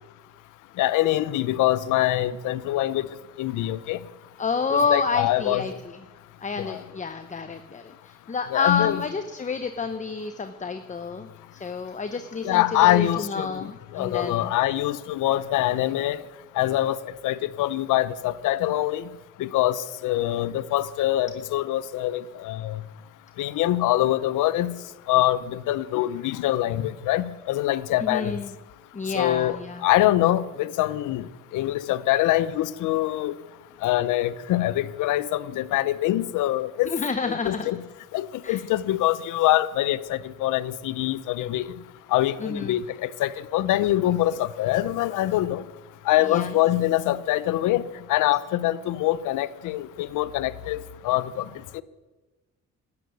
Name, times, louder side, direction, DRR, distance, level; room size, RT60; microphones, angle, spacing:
voice 1, 0.8-3.1 3.4-4.0 4.7-5.6 6.6-6.8 8.5-9.0 12.4-16.2 16.6-17.0 17.2-19.0 19.4-22.8 23.4-24.7 25.1-28.4 29.1-31.3 31.5-33.3 33.8-36.9 37.3-37.8 38.1-41.7 42.1-45.6 46.1-47.8 48.1-51.4 51.7-51.8, left 14 dB, 85° left, 17 dB, 0.7 m, -24 dB
voice 2, 4.4-6.0 6.4-11.3 11.6-14.5 28.0-28.5 28.9-29.9 36.8-37.7 38.4-38.6 42.4-42.8 46.2-46.5, left 5 dB, 25° left, 8 dB, 0.9 m, -29 dB
12.5 x 8.8 x 9.4 m, 1.2 s
cardioid pair, 90°, 30 cm